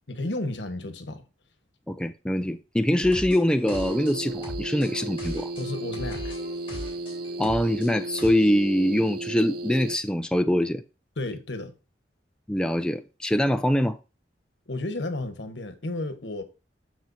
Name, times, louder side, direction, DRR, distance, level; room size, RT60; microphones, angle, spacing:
voice 1, 0.1-1.2 5.6-6.4 11.2-11.7 14.7-16.4, left 2 dB, 75° left, 1.3 m, -32 dB
voice 2, 1.9-5.5 7.4-10.8 12.5-14.0, left 1 dB, 5° left, 0.4 m, -24 dB
sound 1, 3.0-8.3, left 1 dB, 30° left, 3.7 m, -39 dB
sound 2, 3.6-10.0, right 2 dB, 55° right, 0.5 m, -34 dB
13.0 x 4.6 x 2.6 m
head